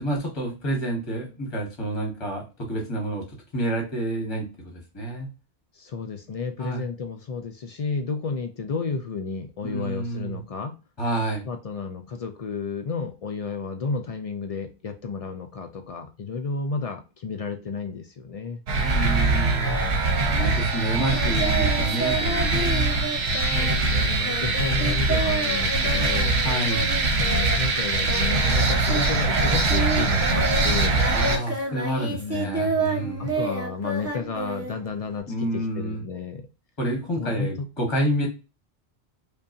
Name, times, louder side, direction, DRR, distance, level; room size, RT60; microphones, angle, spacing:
voice 1, 0.0-3.2 3.5-4.5 4.9-5.3 6.6-6.8 9.6-10.4 11.0-11.4 18.7-19.7 20.3-23.1 23.5-24.1 26.4-26.9 31.1-33.3 35.3-36.0 36.8-38.3, right 1 dB, 25° left, 1 dB, 1.1 m, -29 dB
voice 2, 5.7-10.7 11.5-18.6 23.4-26.4 27.1-31.0 32.1-36.5 37.2-37.7, left 4 dB, 60° left, 6 dB, 0.3 m, -32 dB
sound 1, 18.7-31.4, right 3 dB, 70° right, 1.0 m, -23 dB
Singing, 21.1-29.1 29.3-35.2, right 2 dB, 15° right, 0.7 m, -30 dB
5.2 x 2.3 x 2.5 m, 0.30 s
omnidirectional pair, 1.1 m